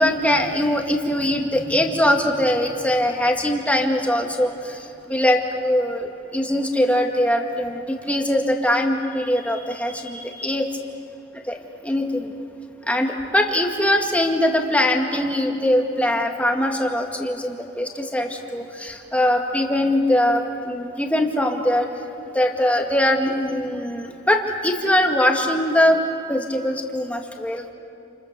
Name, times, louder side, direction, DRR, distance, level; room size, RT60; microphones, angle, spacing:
voice 1, 0.0-4.8 5.1-10.7 11.5-11.6 11.8-12.3 12.9-21.9 22.3-26.0 26.3-27.7, left 1 dB, 5° left, 2 dB, 2.1 m, -21 dB
29.0 x 28.0 x 6.9 m, 2.6 s
head